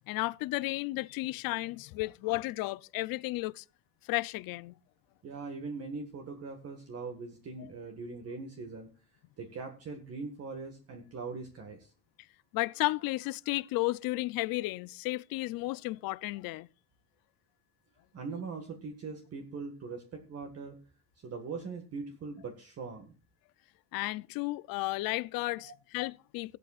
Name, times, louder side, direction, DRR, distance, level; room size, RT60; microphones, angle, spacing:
voice 1, 0.1-3.6 4.0-4.7 12.5-16.7 23.9-26.6, left 20 dB, 85° left, 0.6 m, -33 dB
voice 2, 5.2-8.9 9.4-11.9 18.1-20.8 21.2-23.1 25.6-25.7, right 4 dB, 45° right, 1.8 m, -41 dB
16.5 x 12.0 x 2.4 m
cardioid pair, 140°, 34 cm